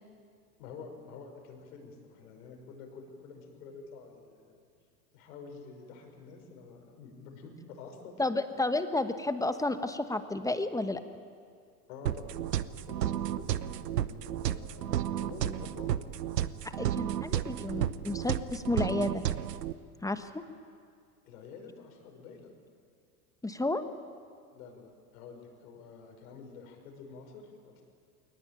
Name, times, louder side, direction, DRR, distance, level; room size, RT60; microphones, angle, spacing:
voice 1, 0.6-4.6 5.1-8.5 11.9-16.0 21.2-22.5 24.5-27.8, left 4 dB, 65° left, 3 dB, 5.5 m, -48 dB
voice 2, 8.2-11.0 16.7-19.2 20.0-20.3 23.4-23.8, left 2 dB, 5° left, 10 dB, 1.1 m, -31 dB
sound 1, 12.1-19.7, right 11 dB, 85° right, 0.9 m, -32 dB
22.0 x 19.0 x 8.9 m, 2.2 s
hypercardioid pair, 95°, 48 cm